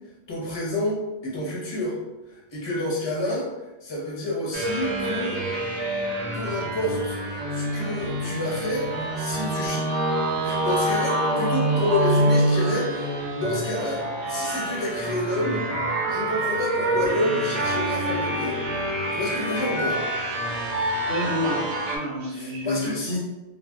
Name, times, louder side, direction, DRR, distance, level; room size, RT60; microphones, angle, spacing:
voice 1, 0.3-2.0 2.3-3.5 3.8-5.4 6.3-9.9 10.4-14.0 14.3-15.6 16.0-18.6 19.1-20.0 22.3-23.2, left 1 dB, 30° left, -4 dB, 0.6 m, -29 dB
sound 1, 4.5-22.0, right 1 dB, 90° right, 0.9 m, -26 dB
voice 2, 21.1-23.2, left 1 dB, 65° right, -3 dB, 0.7 m, -29 dB
2.2 x 2.0 x 3.5 m, 1.0 s
omnidirectional pair, 1.2 m